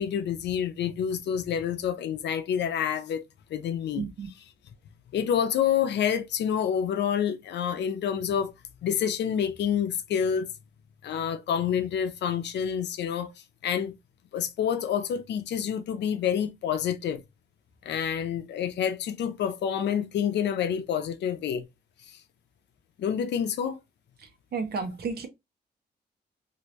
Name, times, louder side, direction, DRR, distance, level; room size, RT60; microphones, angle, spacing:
voice 1, 0.0-3.2 3.5-4.1 5.1-8.5 8.8-10.5 11.0-13.3 13.6-13.9 14.3-17.2 17.8-21.6 23.0-23.8, left 8 dB, 80° left, 0.6 m, -28 dB
voice 2, 4.0-4.3 24.2-25.3, right 5 dB, 65° right, 0.9 m, -33 dB
2.9 x 2.6 x 3.1 m
wide cardioid pair, 145°, 18 cm